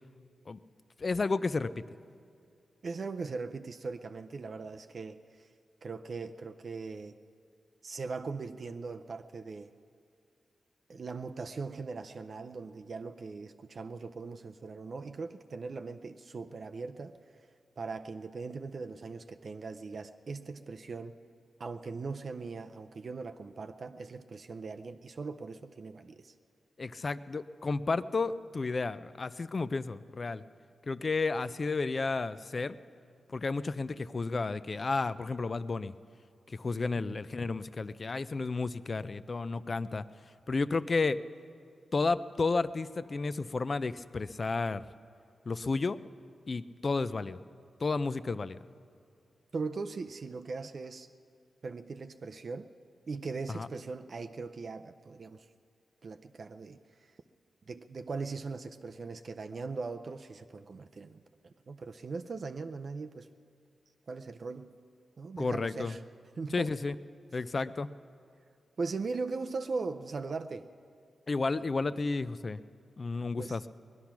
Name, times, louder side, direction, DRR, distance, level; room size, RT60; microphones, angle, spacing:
voice 1, 1.0-1.8 26.8-30.4 30.9-32.8 33.3-35.9 36.5-40.0 40.5-41.2 41.9-44.8 45.5-46.0 46.5-47.4 47.8-48.6 53.5-53.7 65.4-65.9 66.5-67.0 67.3-67.9 71.3-72.6 73.0-73.7, left 3 dB, 40° left, 14 dB, 0.4 m, -32 dB
voice 2, 2.8-5.5 5.8-7.2 7.8-9.7 10.9-17.5 17.8-21.2 21.6-26.3 37.1-37.2 49.5-51.1 51.6-52.7 53.1-55.5 56.0-57.1 57.7-63.3 64.1-64.8 65.2-66.0 66.4-66.7 68.8-70.7 73.4-73.6, right 4 dB, 50° right, 7 dB, 0.4 m, -40 dB
20.0 x 11.5 x 5.9 m, 2.4 s
wide cardioid pair, 115°, 0 cm